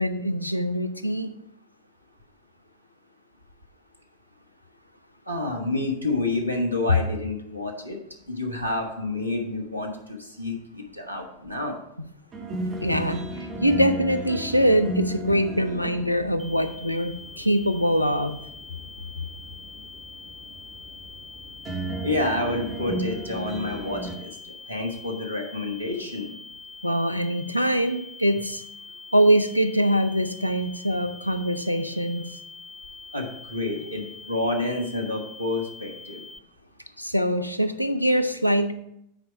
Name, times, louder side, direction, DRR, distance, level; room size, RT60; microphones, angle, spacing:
voice 1, 0.0-1.3 12.8-18.4 26.8-28.6 29.1-32.2 37.0-38.7, equal, 90° left, 10 dB, 0.5 m, -23 dB
voice 2, 5.3-8.0 8.3-11.8 22.0-26.3 33.1-36.2, left 2 dB, 85° right, 3 dB, 1.2 m, -29 dB
sound 1, 12.3-24.1, right 1 dB, 30° right, 1.5 m, -35 dB
sound 2, 16.4-36.4, left 4 dB, 5° left, 0.4 m, -44 dB
8.0 x 4.6 x 5.6 m, 0.77 s
figure-of-eight pair, 90°, 0 cm